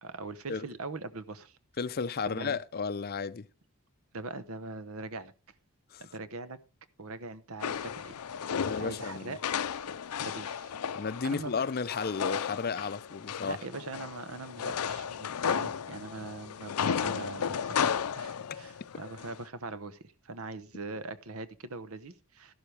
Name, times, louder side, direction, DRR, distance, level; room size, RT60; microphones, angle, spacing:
voice 1, 0.0-1.6 2.3-2.6 4.1-5.3 6.0-6.6 7.0-8.1 8.6-9.4 10.2-10.7 11.2-11.6 13.4-17.9 18.1-20.0 20.2-22.5, right 3 dB, 70° right, 0.9 m, -41 dB
voice 2, 1.8-3.5 5.9-6.0 8.6-9.4 10.9-13.6, left 5 dB, 45° left, 0.5 m, -33 dB
sound 1, 7.6-19.4, left 7 dB, 90° left, 0.5 m, -34 dB
13.0 x 12.0 x 3.3 m
head